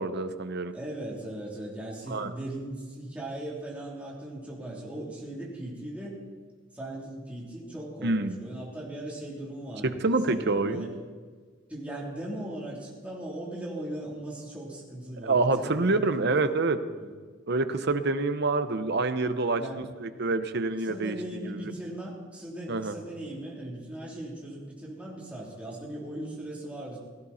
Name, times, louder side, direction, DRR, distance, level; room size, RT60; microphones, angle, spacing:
voice 1, 0.0-0.7 2.1-2.3 8.0-8.3 9.8-10.9 15.2-16.8 17.5-21.2 21.4-21.7 22.7-23.0, right 3 dB, 50° right, 10 dB, 0.8 m, -27 dB
voice 2, 0.7-6.2 6.7-9.9 10.3-10.9 11.7-16.0 16.4-16.6 17.0-17.1 19.6-19.8 20.8-27.0, right 1 dB, 5° right, -5 dB, 3.1 m, -38 dB
16.5 x 14.5 x 4.2 m, 1.5 s
head